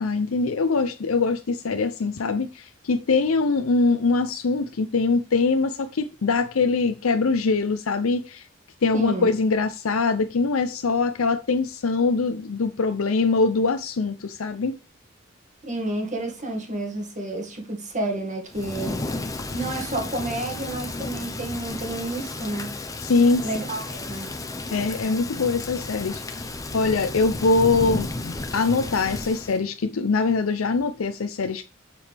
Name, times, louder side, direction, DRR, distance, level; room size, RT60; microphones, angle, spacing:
voice 1, 0.0-8.4 8.8-14.8 23.0-23.5 24.7-31.6, left 4 dB, 85° left, 0.6 m, -23 dB
voice 2, 8.9-9.3 15.6-19.0 19.5-22.7 23.4-24.3, right 2 dB, 35° right, 2.1 m, -30 dB
Thunder / Rain, 18.5-29.6, left 2 dB, 15° left, 0.9 m, -33 dB
7.2 x 6.9 x 3.4 m
head